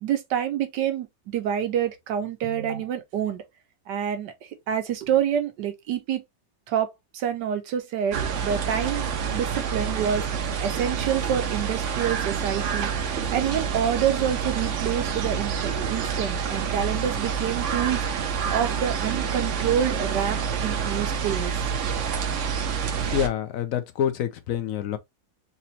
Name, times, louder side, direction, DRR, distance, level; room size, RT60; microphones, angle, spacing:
voice 1, 0.0-3.4 3.9-4.3 4.7-6.2 6.7-9.1 9.3-10.2 10.6-12.9 13.3-18.1 18.5-21.5, right 9 dB, 80° right, 1.4 m, -27 dB
sound 1, 8.1-23.3, right 7 dB, 60° right, 0.9 m, -28 dB
voice 2, 23.1-25.0, left 9 dB, 65° left, 0.9 m, -27 dB
4.2 x 3.0 x 2.7 m
omnidirectional pair, 1.9 m